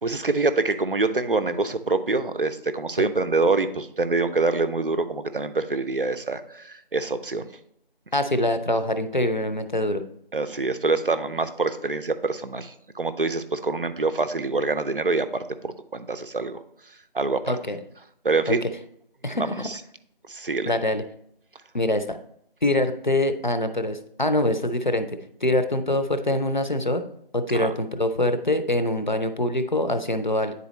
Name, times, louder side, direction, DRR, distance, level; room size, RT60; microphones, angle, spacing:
voice 1, 0.0-7.5 10.3-17.4 18.2-18.6 19.4-19.8 20.3-20.7 27.5-27.7, right 3 dB, 65° right, 10 dB, 0.6 m, -25 dB
voice 2, 8.1-10.0 17.5-17.8 18.5-18.6 19.2-19.5 20.7-21.0 21.7-22.2 22.6-25.1 25.4-27.0 27.3-30.5, left 1 dB, 50° left, 9 dB, 0.6 m, -24 dB
9.4 x 4.1 x 3.1 m, 0.71 s
figure-of-eight pair, 175°, 30 cm